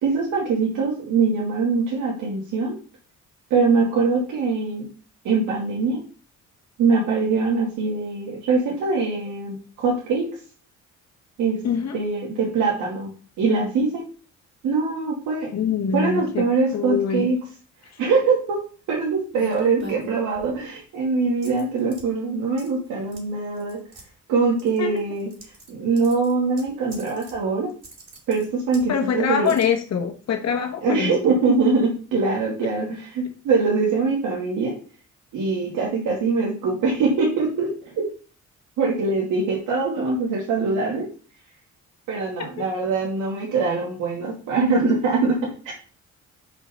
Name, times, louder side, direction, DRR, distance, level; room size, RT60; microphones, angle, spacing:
voice 1, 0.0-2.8 3.5-4.9 5.2-6.0 6.8-10.3 11.4-11.6 11.9-13.1 13.4-14.0 14.6-15.5 15.9-17.4 18.0-18.6 18.9-23.8 24.3-25.3 25.7-27.7 28.3-29.5 30.8-34.7 35.3-38.0 38.8-41.1 42.1-45.7, right 4 dB, 90° right, 2.4 m, -23 dB
voice 2, 11.6-12.0 15.5-16.4 16.7-17.3 17.9-18.0 24.8-25.0 28.9-31.4 42.6-42.7, left 7 dB, 60° left, 1.4 m, -24 dB
sound 1, 19.3-20.6 21.4-22.0 22.6-22.9 23.1-23.2 23.5-24.0 24.6-25.7 26.0-27.4 27.7-28.9 29.4-29.6, right 1 dB, 40° right, 4.5 m, -40 dB
5.9 x 5.5 x 5.7 m
cardioid pair, 90°, 30 cm